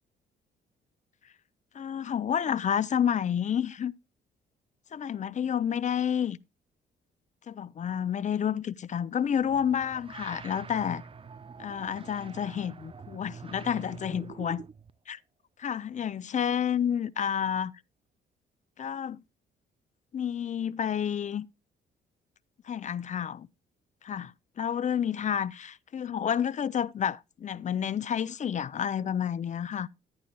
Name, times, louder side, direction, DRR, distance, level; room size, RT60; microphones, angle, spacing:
voice 1, 1.7-3.9 4.9-6.4 7.5-11.0 11.6-14.6 15.1-15.2 15.6-17.7 18.8-19.2 20.1-21.5 22.7-23.5 24.0-29.9, left 8 dB, 40° left, 0.5 m, -30 dB
sound 1, 9.4-14.9, right 5 dB, 25° right, 0.6 m, -45 dB
13.0 x 10.5 x 2.2 m
cardioid pair, 90°, 20 cm